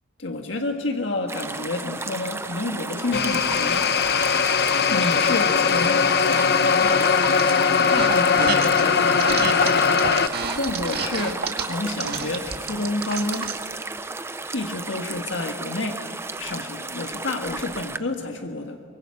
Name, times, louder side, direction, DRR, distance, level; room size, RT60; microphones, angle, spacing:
voice 1, 0.2-3.9 4.9-7.1 7.7-9.6 10.6-13.6 14.5-16.0 16.4-18.8, left 2 dB, 80° left, 3 dB, 1.6 m, -29 dB
sound 1, 1.3-18.0, right 3 dB, 15° right, 0.7 m, -34 dB
sound 2, 3.1-10.3, left 6 dB, 55° left, 0.9 m, -20 dB
sound 3, 7.0-7.5 7.9-8.8 9.2-13.6, right 5 dB, 55° right, 2.1 m, -29 dB
24.0 x 23.5 x 9.6 m, 2.1 s
head